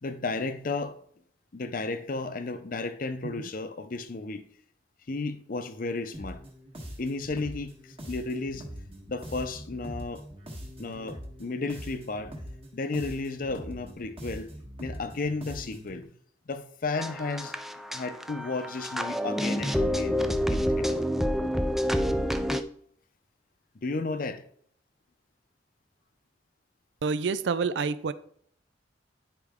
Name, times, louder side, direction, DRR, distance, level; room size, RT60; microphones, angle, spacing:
voice 1, 0.0-1.0 1.5-4.4 5.1-6.4 7.0-8.7 9.1-10.3 10.8-12.3 12.7-14.5 14.8-16.1 16.5-17.6 17.9-20.2 20.5-21.0 23.7-24.5, left 3 dB, 50° left, 0.6 m, -33 dB
sound 1, 6.1-16.0, equal, 30° right, 1.4 m, -43 dB
sound 2, 16.9-22.6, equal, ahead, 0.3 m, -28 dB
voice 2, 27.0-28.1, right 5 dB, 75° right, 0.4 m, -28 dB
10.5 x 4.6 x 3.6 m
head